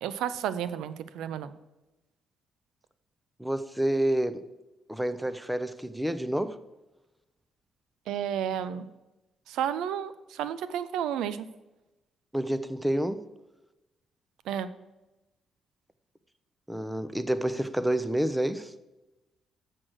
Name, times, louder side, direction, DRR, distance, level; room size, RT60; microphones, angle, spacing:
voice 1, 0.0-1.5 8.1-8.9 9.5-11.5 14.5-14.7, right 9 dB, 85° right, 0.5 m, -32 dB
voice 2, 3.4-4.4 4.9-6.6 12.3-13.3 16.7-18.7, right 1 dB, 5° right, 0.6 m, -28 dB
7.4 x 6.4 x 6.3 m
cardioid pair, 90°, 0 cm